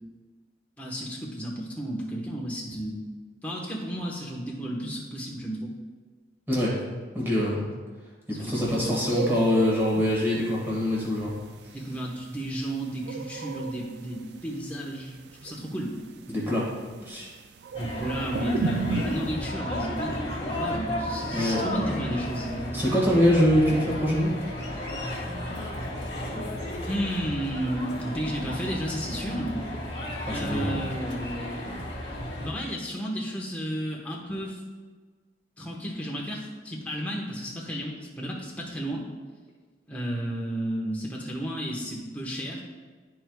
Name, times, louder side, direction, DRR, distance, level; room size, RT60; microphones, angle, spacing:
voice 1, 0.8-3.0 3.4-5.7 8.3-9.0 11.7-16.0 17.7-22.8 26.9-29.6 30.3-31.8 32.4-34.6 35.6-39.1 39.9-42.6, right 1 dB, 10° left, -3 dB, 1.1 m, -32 dB
voice 2, 7.1-7.6 8.3-11.3 16.3-16.7 17.0-17.3 21.3-21.6 21.9-22.0 22.7-24.4 30.3-30.8, left 1 dB, 15° right, -6 dB, 1.7 m, -24 dB
sound 1, 8.6-19.3, right 4 dB, 70° right, 0.4 m, -36 dB
sound 2, 17.7-32.5, left 1 dB, 30° left, 1.6 m, -34 dB
12.5 x 4.6 x 2.3 m, 1.4 s
head